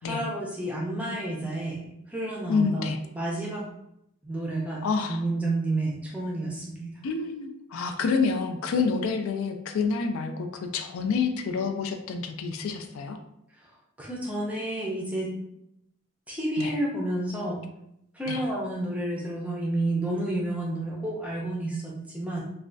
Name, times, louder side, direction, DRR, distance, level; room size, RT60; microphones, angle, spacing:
voice 1, 0.0-3.6 4.2-4.8 5.1-6.9 13.6-13.7 14.0-15.3 16.3-17.6 18.1-22.4, right 1 dB, 5° right, -3 dB, 0.5 m, -30 dB
voice 2, 2.5-3.0 4.8-5.2 7.0-13.2 16.6-16.7 18.3-18.4, left 5 dB, 75° left, 6 dB, 0.3 m, -28 dB
3.2 x 2.2 x 2.5 m, 0.80 s
head